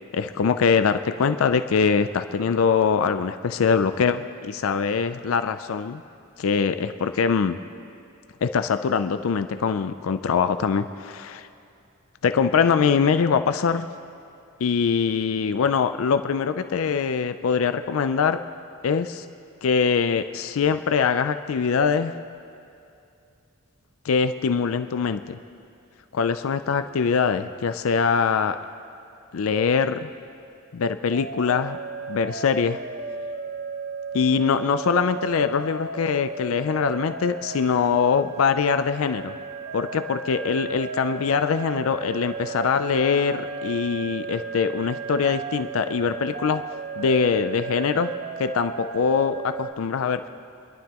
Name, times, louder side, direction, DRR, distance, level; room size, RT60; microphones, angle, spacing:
voice 1, 0.1-6.0 6.4-7.6 8.4-11.5 12.2-13.9 14.6-18.4 18.8-19.3 19.6-22.2 24.0-25.4 26.1-28.6 29.3-30.1 30.7-31.8 32.1-32.8 34.1-39.3 39.7-46.6 47.0-48.1 48.4-50.2, left 6 dB, 85° left, 10 dB, 0.4 m, -23 dB
sound 1, 31.1-49.7, right 5 dB, 55° right, 0.7 m, -34 dB
28.0 x 11.5 x 3.0 m, 2.6 s
head